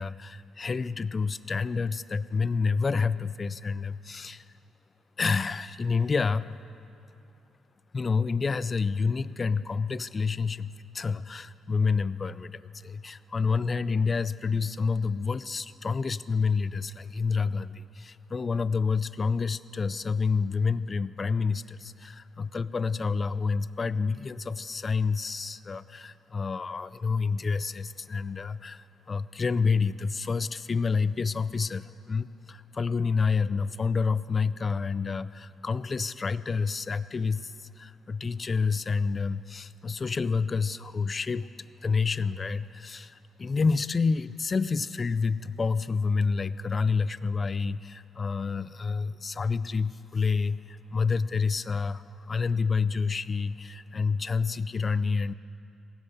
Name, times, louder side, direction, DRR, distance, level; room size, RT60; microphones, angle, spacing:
voice 1, 0.0-4.4 5.2-6.6 7.9-41.5 41.8-55.3, left 5 dB, 35° left, 17 dB, 0.4 m, -28 dB
17.5 x 7.6 x 8.2 m, 2.7 s
cardioid pair, 90°, 0 cm